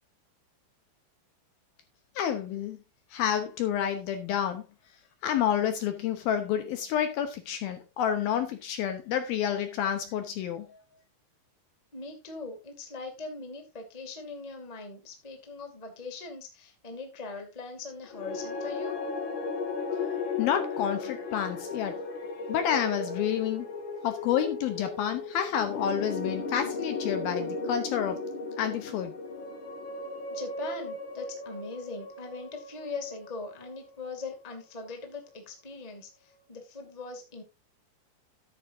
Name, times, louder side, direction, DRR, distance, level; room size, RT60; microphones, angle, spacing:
voice 1, 2.2-2.8 3.1-4.7 5.2-10.7 19.9-23.7 24.0-28.2 28.6-29.1, left 9 dB, 70° left, 2.5 m, -29 dB
voice 2, 11.9-18.9 30.3-37.4, left 4 dB, 15° left, 1.3 m, -41 dB
sound 1, 18.1-34.4, left 4 dB, 90° left, 1.0 m, -36 dB
13.0 x 10.0 x 2.7 m
omnidirectional pair, 5.0 m